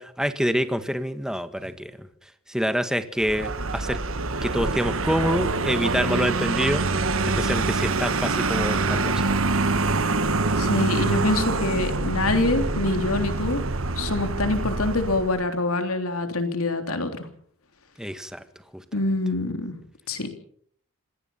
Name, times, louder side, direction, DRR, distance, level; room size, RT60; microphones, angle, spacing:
voice 1, 0.0-2.1 2.5-4.0 4.4-6.8 7.3-9.5 18.0-18.4 18.7-18.8, equal, 5° right, 9 dB, 1.6 m, -26 dB
Vehicle, 3.2-15.5, right 3 dB, 70° right, 1.5 m, -25 dB
voice 2, 10.6-13.6 14.0-17.3 18.9-19.7 20.1-20.3, left 2 dB, 85° left, 7 dB, 3.4 m, -25 dB
26.0 x 18.0 x 5.8 m, 0.64 s
head